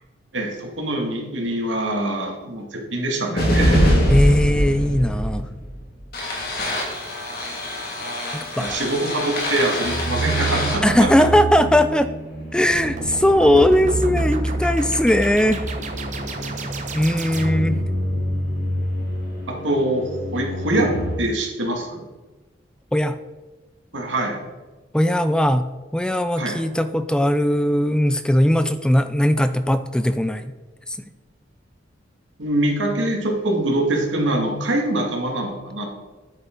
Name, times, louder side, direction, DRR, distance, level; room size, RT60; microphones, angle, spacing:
voice 1, 0.3-4.0 8.6-11.1 19.5-20.9 21.2-22.0 23.9-24.4 26.4-26.5 32.4-35.9, right 1 dB, 85° right, 1 dB, 2.3 m, -24 dB
sound 1, 3.4-21.2, equal, 55° left, 2.4 m, -25 dB
voice 2, 4.1-5.5 8.3-8.7 10.8-12.1 12.5-15.6 16.9-17.8 22.9-23.2 24.9-30.5 30.9-31.0, left 1 dB, 5° left, 11 dB, 0.3 m, -19 dB
sound 2, 12.7-17.9, right 3 dB, 40° right, 1.1 m, -34 dB
10.5 x 8.4 x 3.9 m, 1.2 s
head